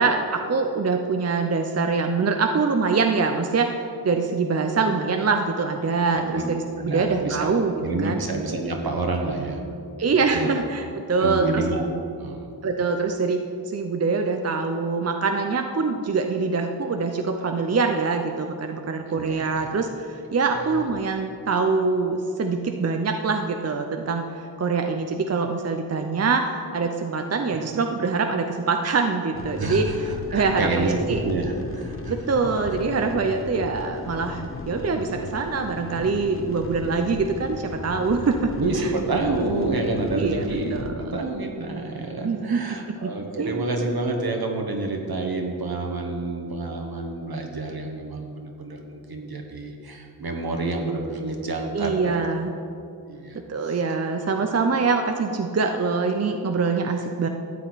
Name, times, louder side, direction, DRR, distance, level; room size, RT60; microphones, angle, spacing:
voice 1, 0.0-7.7 8.0-8.2 10.0-11.7 12.6-13.4 13.7-31.2 32.1-38.5 38.8-38.9 39.3-39.4 40.1-40.5 40.7-41.0 42.2-43.1 43.4-43.7 51.7-52.5 53.3-57.3, right 4 dB, 40° right, 5 dB, 0.6 m, -24 dB
voice 2, 6.8-7.5 7.8-9.7 10.3-10.5 11.1-11.9 12.2-12.5 19.2-19.7 20.6-20.9 27.5-27.6 29.5-32.1 38.6-52.2 53.1-53.8 54.6-54.7, right 2 dB, 70° right, 2 dB, 1.4 m, -28 dB
sound 1, 29.3-40.9, left 3 dB, 35° left, 0.7 m, -36 dB
13.0 x 8.1 x 4.0 m, 2.5 s
wide cardioid pair, 80°, 38 cm